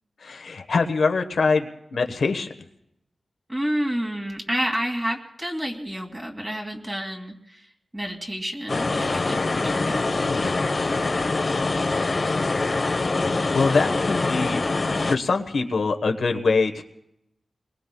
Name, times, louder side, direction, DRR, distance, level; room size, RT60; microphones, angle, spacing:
voice 1, 0.2-2.5 10.2-10.6 12.9-14.6 15.1-16.8, left 4 dB, 80° left, 5 dB, 1.2 m, -24 dB
voice 2, 3.5-10.0, equal, 20° right, 0 dB, 2.5 m, -29 dB
sound 1, 8.7-15.2, left 3 dB, 45° left, 1.0 m, -24 dB
28.5 x 21.5 x 2.3 m, 0.80 s
wide cardioid pair, 90°, 0 cm